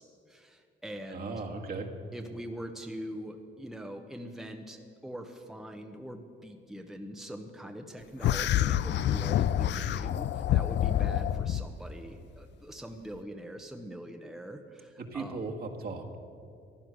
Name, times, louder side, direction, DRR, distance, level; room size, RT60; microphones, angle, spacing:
voice 1, 0.0-1.3 2.1-15.4, equal, ahead, 4 dB, 1.0 m, -43 dB
voice 2, 1.1-1.9 15.0-16.2, right 3 dB, 50° right, 1 dB, 1.8 m, -37 dB
sound 1, 8.2-11.6, left 11 dB, 65° left, 0.4 m, -27 dB
15.5 x 10.5 x 6.3 m, 2.5 s
cardioid pair, 90°, 20 cm